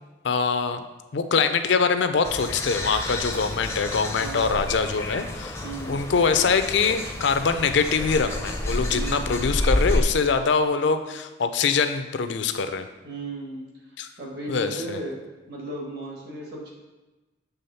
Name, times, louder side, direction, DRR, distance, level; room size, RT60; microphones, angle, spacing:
voice 1, 0.2-0.8 1.1-5.6 5.9-12.9 14.0-14.1 14.5-15.0, left 5 dB, 65° left, 9 dB, 0.5 m, -23 dB
sound 1, 2.2-10.0, left 1 dB, 15° left, 0.5 m, -29 dB
voice 2, 4.2-4.5 5.6-6.0 8.9-9.3 13.0-13.6 14.2-15.2 15.5-16.7, right 1 dB, 55° right, -2 dB, 1.6 m, -35 dB
6.9 x 3.5 x 5.6 m, 1.2 s
head